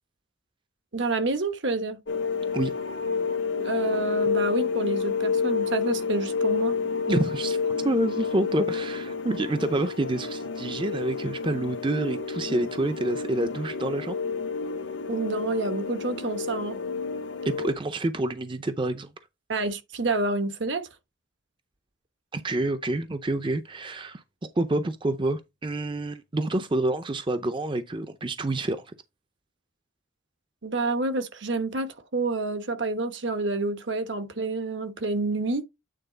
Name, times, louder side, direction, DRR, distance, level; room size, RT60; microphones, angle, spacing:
voice 1, 0.9-2.0 3.5-6.7 15.1-16.8 19.5-20.9 30.6-35.6, right 3 dB, 65° right, 1.2 m, -28 dB
sound 1, 2.1-17.7, left 5 dB, 65° left, 0.7 m, -29 dB
voice 2, 7.1-14.2 17.4-19.1 22.3-24.2 24.6-28.9, right 2 dB, 25° right, 0.5 m, -28 dB
9.1 x 4.0 x 3.9 m
head